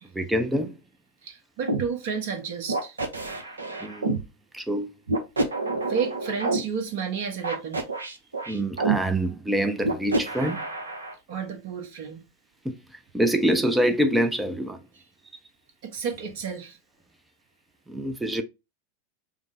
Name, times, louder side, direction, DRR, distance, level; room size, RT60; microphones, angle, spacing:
voice 1, 0.1-0.8 3.8-4.2 4.5-4.9 8.5-10.6 12.6-12.8 13.1-14.8 17.9-18.4, right 1 dB, 5° right, 0.5 m, -25 dB
voice 2, 1.2-3.0 5.9-7.8 11.3-12.2 15.8-16.8, right 6 dB, 50° right, 1.0 m, -31 dB
sound 1, 1.7-1.8 2.7-4.2 5.1-6.6 7.4-9.0 9.8-11.1, right 3 dB, 75° right, 0.7 m, -27 dB
5.0 x 2.1 x 3.3 m
figure-of-eight pair, 90°, 0 cm